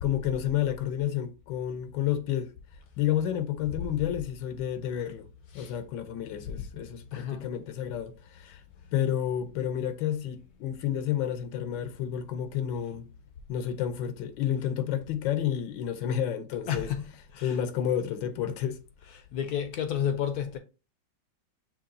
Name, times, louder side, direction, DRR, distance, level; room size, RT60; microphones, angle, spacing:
voice 1, 0.0-2.5 3.0-5.3 5.5-8.6 8.9-13.1 13.5-16.9 17.4-18.8, left 10 dB, 85° left, 1.4 m, -30 dB
voice 2, 6.2-6.7 7.1-7.5 8.5-8.6 16.7-17.6 19.0-20.6, left 9 dB, 70° left, 1.0 m, -33 dB
6.6 x 3.0 x 2.5 m
omnidirectional pair, 2.0 m